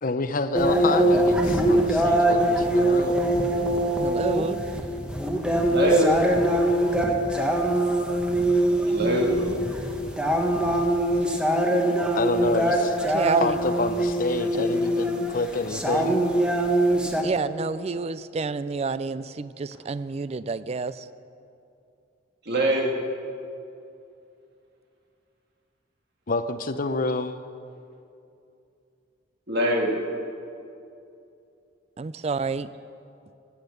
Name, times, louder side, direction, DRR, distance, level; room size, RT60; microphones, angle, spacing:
voice 1, 0.0-3.2 12.1-13.0 13.4-13.5 13.8-16.2 26.3-27.4, left 3 dB, 45° left, 10 dB, 0.6 m, -28 dB
sound 1, 0.5-17.2, right 1 dB, 5° right, 1.0 m, -23 dB
voice 2, 4.0-4.6 13.1-13.6 14.5-14.6 17.2-21.1 32.0-32.7, right 4 dB, 30° right, 15 dB, 0.4 m, -28 dB
voice 3, 5.7-6.2 8.9-9.6 22.5-22.9 29.5-29.9, right 1 dB, 55° right, 0 dB, 2.1 m, -23 dB
16.0 x 8.9 x 6.6 m, 2.6 s
head